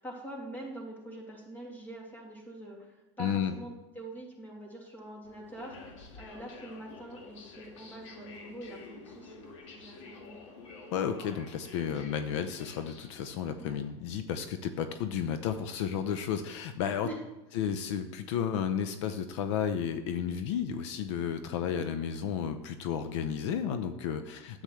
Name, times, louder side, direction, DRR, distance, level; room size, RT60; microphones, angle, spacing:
voice 1, 0.0-9.5 9.7-10.6 13.6-13.8 17.0-17.1, right 1 dB, 10° left, -1 dB, 2.4 m, -44 dB
voice 2, 3.2-3.5 10.9-17.1 17.5-24.6, left 8 dB, 75° left, 9 dB, 0.7 m, -32 dB
sound 1, 5.2-13.9, left 4 dB, 90° left, 1.7 m, -50 dB
10.0 x 8.2 x 3.2 m, 1.0 s
supercardioid pair, 130°, 15 cm